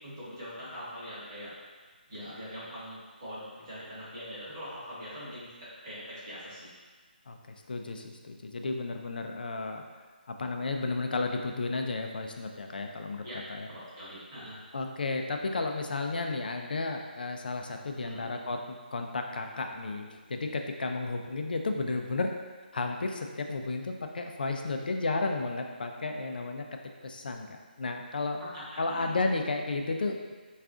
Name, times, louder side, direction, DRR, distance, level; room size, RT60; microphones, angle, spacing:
voice 1, 0.0-1.5 2.1-6.7 13.2-14.6 17.9-18.3 28.5-29.2, equal, 25° right, -10 dB, 1.1 m, -42 dB
voice 2, 7.3-9.9 10.4-13.2 13.5-13.7 14.7-22.3 22.7-26.6 27.0-28.4 28.8-30.3, left 3 dB, 60° left, 4 dB, 0.4 m, -33 dB
3.5 x 2.4 x 3.7 m, 1.4 s
hypercardioid pair, 180°, 5 cm